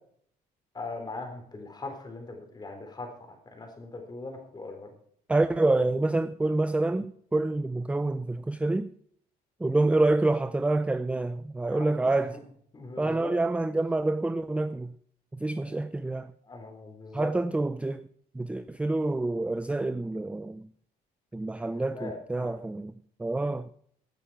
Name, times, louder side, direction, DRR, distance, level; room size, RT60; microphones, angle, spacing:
voice 1, 0.7-4.9 11.7-11.9 12.3-12.4 12.7-13.4 15.7-15.8 16.5-17.3 22.0-22.6, left 3 dB, 25° left, 3.6 m, -40 dB
voice 2, 5.3-8.9 9.6-12.4 13.0-14.9 15.3-16.3 17.1-18.1 18.3-20.7 21.3-22.9 23.2-23.7, right 2 dB, 5° right, 0.4 m, -27 dB
16.0 x 9.1 x 4.7 m
cardioid pair, 110°, 17 cm